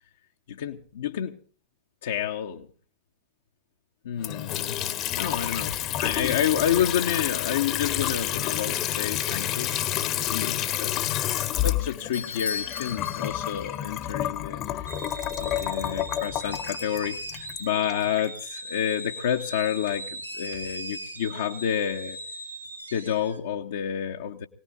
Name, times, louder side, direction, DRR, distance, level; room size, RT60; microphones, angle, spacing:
voice 1, 0.5-1.4 2.0-2.7 4.0-4.8 5.2-11.1 11.6-14.6 15.4-22.2 22.9-24.5, left 9 dB, 60° left, 2 dB, 1.3 m, -29 dB
Water tap faucet / Sink (filling or washing) / Trickle dribble, 4.2-18.3, left 12 dB, 35° left, 1.3 m, -29 dB
Bell / Doorbell, 12.1-13.8, left 5 dB, 75° left, 3.1 m, -35 dB
sound 1, 14.9-23.4, right 1 dB, 85° right, 3.8 m, -39 dB
25.0 x 19.0 x 2.8 m, 0.42 s
figure-of-eight pair, 90°, 0 cm